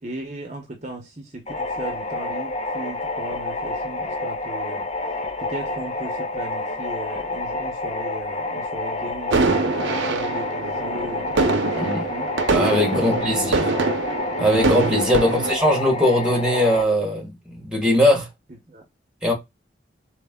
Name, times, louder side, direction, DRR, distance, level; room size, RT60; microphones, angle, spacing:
voice 1, 0.0-4.9 5.4-9.4 9.9-12.3 13.0-13.8 15.2-15.6 18.7-18.8, right 2 dB, 35° right, 0.9 m, -37 dB
sound 1, 1.5-16.8, left 2 dB, 35° left, 0.8 m, -29 dB
sound 2, 9.3-15.5, right 3 dB, 80° right, 0.7 m, -24 dB
voice 2, 12.5-13.6 14.4-18.3 19.2-19.3, left 1 dB, 5° right, 1.3 m, -20 dB
4.1 x 3.3 x 3.6 m
head